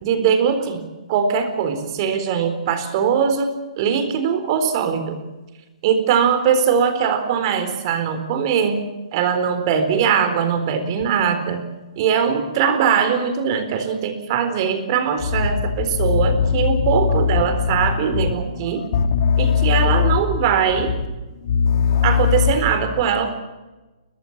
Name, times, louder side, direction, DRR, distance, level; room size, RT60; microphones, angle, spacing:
voice 1, 0.0-0.8 1.1-5.2 5.8-8.8 9.1-11.6 12.0-18.8 19.4-20.9 22.0-23.3, right 7 dB, 40° right, 10 dB, 4.0 m, -21 dB
voice 2, 16.0-16.8 18.8-20.2 21.4-22.5, left 7 dB, 55° left, 6 dB, 3.9 m, -19 dB
22.5 x 20.0 x 7.4 m, 1.1 s
hypercardioid pair, 145°, 4 cm